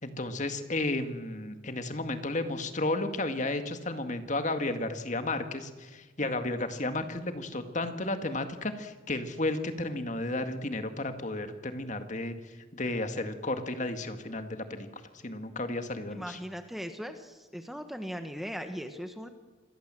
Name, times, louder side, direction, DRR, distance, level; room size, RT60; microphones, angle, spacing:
voice 1, 0.0-12.3 12.7-14.9 15.2-16.4, left 2 dB, 35° left, 8 dB, 1.9 m, -33 dB
voice 2, 16.1-19.3, equal, ahead, 7 dB, 1.3 m, -39 dB
27.5 x 20.5 x 7.7 m, 1.3 s
head